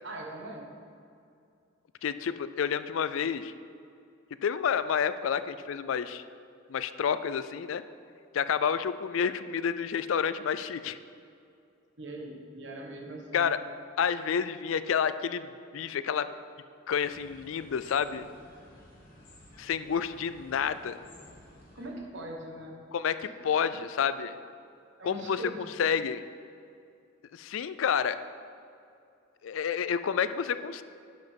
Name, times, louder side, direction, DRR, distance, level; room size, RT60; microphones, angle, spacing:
voice 1, 0.0-0.7 12.0-13.6 21.7-22.8 25.0-25.7, right 2 dB, 60° right, 0 dB, 1.4 m, -41 dB
voice 2, 2.0-3.5 4.4-6.2 6.7-7.8 8.3-11.0 13.3-13.6 14.0-16.3 16.9-18.3 19.6-21.0 22.9-24.3 25.0-25.4 25.8-26.2 27.3-28.2 29.4-30.8, left 7 dB, 75° left, 13 dB, 0.4 m, -29 dB
sound 1, 16.9-21.9, left 1 dB, 45° left, 2.0 m, -54 dB
10.5 x 6.0 x 5.2 m, 2.5 s
head